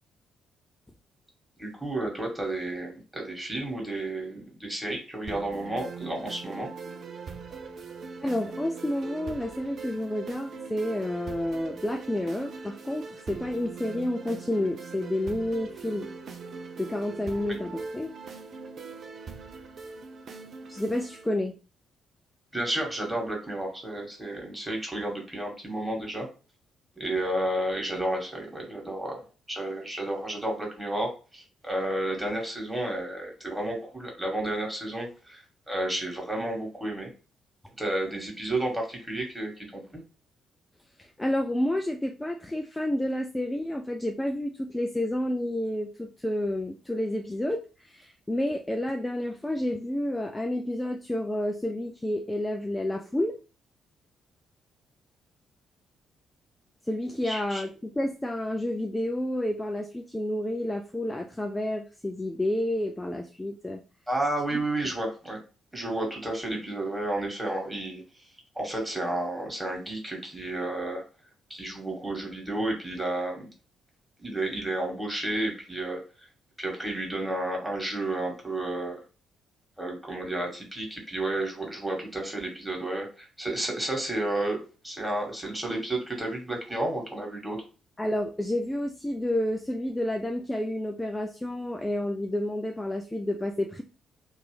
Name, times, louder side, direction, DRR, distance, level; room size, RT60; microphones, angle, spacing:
voice 1, 1.6-6.7 17.5-17.6 22.5-26.3 27.0-37.1 37.8-39.8 57.2-57.6 64.1-65.4 65.7-68.0 68.5-71.0 71.5-73.5 74.2-76.3 76.6-79.0 79.8-87.6, right 1 dB, 10° right, 0 dB, 1.7 m, -31 dB
sound 1, 5.3-21.3, right 4 dB, 55° right, 0.5 m, -41 dB
voice 2, 8.2-16.1 16.8-18.1 20.7-21.6 41.0-53.4 56.9-63.8 64.5-64.6 88.0-93.8, left 1 dB, 15° left, 4 dB, 0.4 m, -30 dB
2.9 x 2.5 x 3.3 m, 0.34 s
figure-of-eight pair, 40°, 0 cm